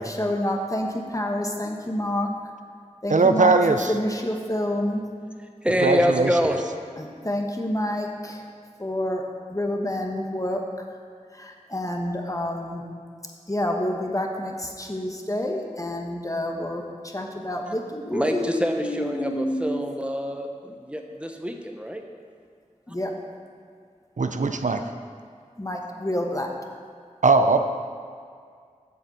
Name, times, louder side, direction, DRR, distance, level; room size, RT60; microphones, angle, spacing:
voice 1, 0.0-2.3 3.0-3.5 3.9-5.0 7.0-8.4 8.8-9.2 9.5-10.6 11.3-12.8 13.5-19.8 22.9-23.1 24.4-24.6 25.6-26.5, left 1 dB, 25° left, 1 dB, 1.1 m, -28 dB
voice 2, 3.1-3.9 5.8-6.4 24.2-24.8 27.2-27.6, right 3 dB, 70° right, 7 dB, 0.5 m, -19 dB
voice 3, 5.6-6.6 17.7-17.8 18.1-22.0, equal, 10° right, 3 dB, 0.9 m, -26 dB
7.6 x 6.7 x 7.0 m, 2.1 s
wide cardioid pair, 55°, 13 cm